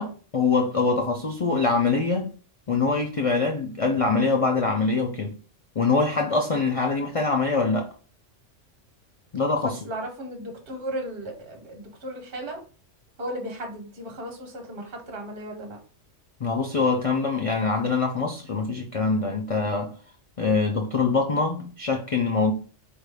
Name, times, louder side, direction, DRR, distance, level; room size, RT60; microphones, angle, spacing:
voice 1, 0.0-2.3 2.7-5.3 5.8-7.9 9.3-9.8 16.4-19.9 20.4-22.5, left 4 dB, 65° left, 0.3 m, -24 dB
voice 2, 9.6-12.6 13.2-15.8, right 1 dB, 50° right, 1.0 m, -35 dB
4.5 x 2.6 x 3.3 m
omnidirectional pair, 1.3 m